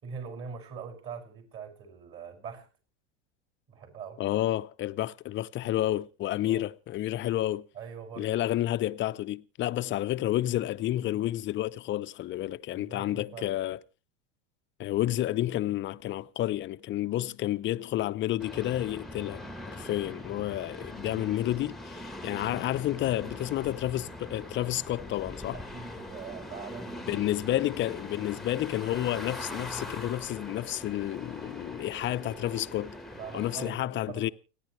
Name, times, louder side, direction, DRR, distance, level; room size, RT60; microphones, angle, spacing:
voice 1, 0.0-2.7 3.7-4.2 6.4-6.6 7.7-8.4 12.7-13.6 25.5-27.0 33.1-34.3, right 6 dB, 35° right, 5.9 m, -42 dB
voice 2, 4.2-7.7 8.2-13.8 14.8-19.4 19.7-25.6 27.1-33.0 33.3-34.3, left 14 dB, 30° left, 0.7 m, -30 dB
train futher away, 18.4-33.7, left 1 dB, ahead, 1.2 m, -42 dB
29.5 x 10.0 x 3.2 m
supercardioid pair, 110°, 37 cm